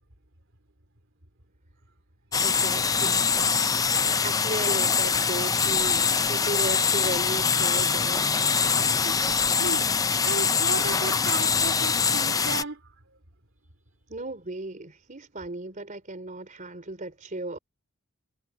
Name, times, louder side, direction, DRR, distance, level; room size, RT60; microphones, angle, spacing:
sound 1, 2.3-12.6, left 6 dB, 15° left, 0.4 m, -24 dB
voice 1, 2.4-3.3 3.9-8.4 14.1-17.6, right 2 dB, 35° right, 3.7 m, -35 dB
voice 2, 9.0-9.9 10.2-12.9, right 3 dB, 60° right, 3.7 m, -35 dB
head